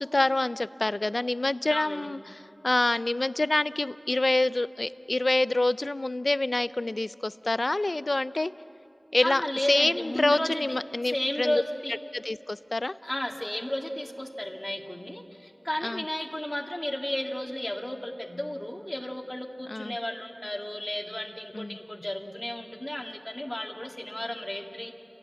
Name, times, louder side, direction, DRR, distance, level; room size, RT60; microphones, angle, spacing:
voice 1, 0.0-2.4 2.6-8.5 9.1-11.6 12.1-12.9 15.8-16.0 19.7-20.0 21.5-21.8, left 2 dB, 50° left, 16 dB, 0.5 m, -27 dB
voice 2, 1.7-2.1 9.2-10.6 11.1-11.9 13.0-24.9, left 1 dB, 20° left, 3 dB, 1.9 m, -33 dB
28.5 x 17.0 x 7.8 m, 2.8 s
wide cardioid pair, 55°, 0 cm